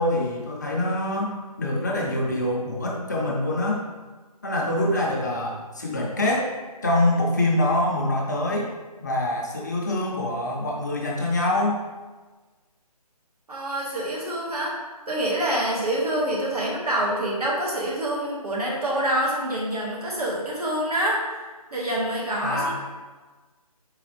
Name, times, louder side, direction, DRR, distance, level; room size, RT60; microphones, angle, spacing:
voice 1, 0.0-3.8 4.4-6.5 6.8-8.7 9.0-11.8 22.4-22.7, left 1 dB, 30° left, -2 dB, 0.5 m, -25 dB
voice 2, 13.5-14.8 15.1-21.2 21.7-22.7, right 1 dB, 75° right, -4 dB, 1.4 m, -26 dB
4.0 x 3.6 x 3.0 m, 1.3 s
figure-of-eight pair, 160°, 20 cm